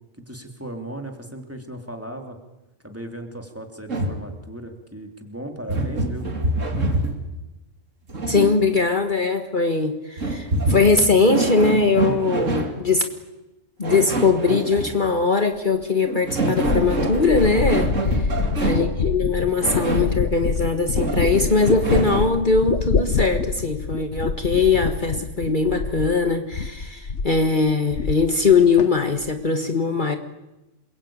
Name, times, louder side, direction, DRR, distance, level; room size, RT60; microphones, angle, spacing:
voice 1, 0.2-2.4 2.8-6.3 18.3-18.8, right 1 dB, 10° right, 4 dB, 3.2 m, -36 dB
sound 1, 3.9-4.3 5.7-7.3 8.1-8.8 10.2-12.8 13.8-15.0 16.0-18.9 19.6-20.2 21.0-22.4, right 2 dB, 85° right, 3.0 m, -26 dB
voice 2, 8.3-13.1 13.8-18.3 18.6-30.2, left 4 dB, 40° left, 6 dB, 1.8 m, -21 dB
sound 2, 15.8-15.9 16.6-26.3 26.5-27.4 27.7-28.5 28.8-29.3, left 5 dB, 65° left, 1.5 m, -26 dB
28.0 x 22.5 x 8.9 m, 1.0 s
omnidirectional pair, 1.3 m